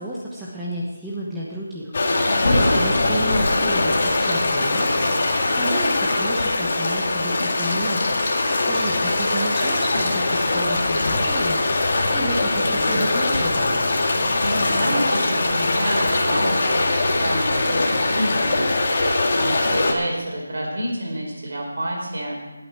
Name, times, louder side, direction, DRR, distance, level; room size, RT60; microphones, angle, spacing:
voice 1, 0.0-13.8, right 1 dB, 5° right, -7 dB, 1.1 m, -31 dB
sound 1, 1.9-19.9, left 2 dB, 40° left, 1.9 m, -22 dB
voice 2, 2.1-2.9 14.4-22.4, right 1 dB, 55° right, -1 dB, 5.0 m, -28 dB
sound 2, 2.4-10.4, left 1 dB, 75° left, 2.0 m, -30 dB
19.0 x 8.8 x 4.5 m, 1.1 s
figure-of-eight pair, 175°, 0 cm